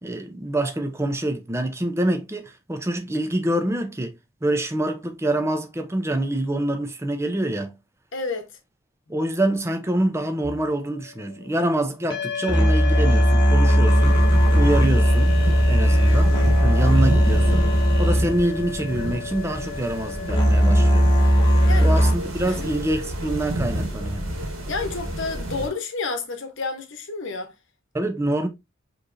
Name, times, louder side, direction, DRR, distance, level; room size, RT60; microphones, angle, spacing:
voice 1, 0.0-4.1 4.4-7.7 9.1-14.2 14.5-16.4 16.6-17.7 18.0-21.0 21.8-24.2 27.9-28.5, right 1 dB, 15° right, 0.5 m, -25 dB
voice 2, 8.1-8.5 21.7-21.9 22.5-22.7 24.7-27.5, left 3 dB, 60° left, 1.0 m, -30 dB
sound 1, 10.4-10.6 12.1-22.1, equal, 20° left, 1.1 m, -18 dB
sound 2, 13.9-25.7, right 1 dB, 70° right, 1.7 m, -30 dB
5.0 x 3.1 x 2.5 m
head